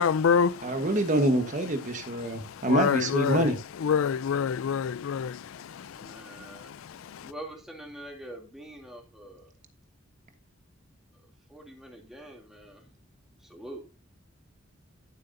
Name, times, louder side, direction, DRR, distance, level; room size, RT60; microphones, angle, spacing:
voice 1, 0.0-0.8 2.2-3.5 3.8-7.3, left 6 dB, 80° left, 0.4 m, -28 dB
voice 2, 0.6-3.6, right 1 dB, 40° right, 1.2 m, -26 dB
voice 3, 5.9-6.7 7.2-9.5 11.5-12.8 13.4-13.8, right 1 dB, ahead, 2.6 m, -44 dB
13.0 x 7.8 x 2.6 m
head